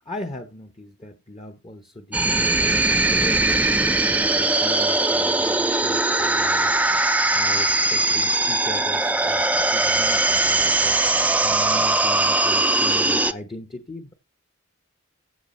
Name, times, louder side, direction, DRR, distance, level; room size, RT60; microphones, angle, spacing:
voice 1, 0.0-2.6 3.1-6.7 7.1-14.1, left 1 dB, 25° left, 1.0 m, -38 dB
sound 1, 2.1-13.3, right 2 dB, 5° right, 0.5 m, -20 dB
15.0 x 5.9 x 4.3 m
head